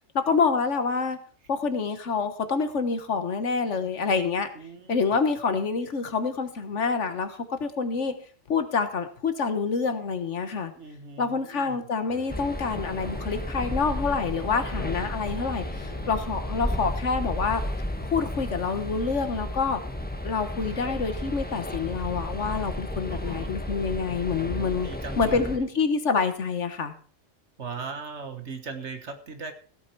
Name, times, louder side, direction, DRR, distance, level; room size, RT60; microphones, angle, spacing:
voice 1, 0.1-1.2 1.5-4.5 4.9-8.1 8.5-10.7 11.2-17.6 18.1-19.8 20.2-24.9 25.2-26.9, left 5 dB, 70° left, 10 dB, 1.6 m, -27 dB
voice 2, 4.5-5.0 10.7-11.8 16.4-16.8 19.9-20.1 20.8-20.9 23.1-23.5 24.3-25.6 27.6-29.5, right 5 dB, 65° right, 8 dB, 1.7 m, -39 dB
sound 1, 12.1-17.7, right 3 dB, 40° right, 2.4 m, -46 dB
sound 2, 12.3-25.6, left 1 dB, 10° left, 1.2 m, -33 dB
16.0 x 8.7 x 4.6 m, 0.43 s
omnidirectional pair, 1.3 m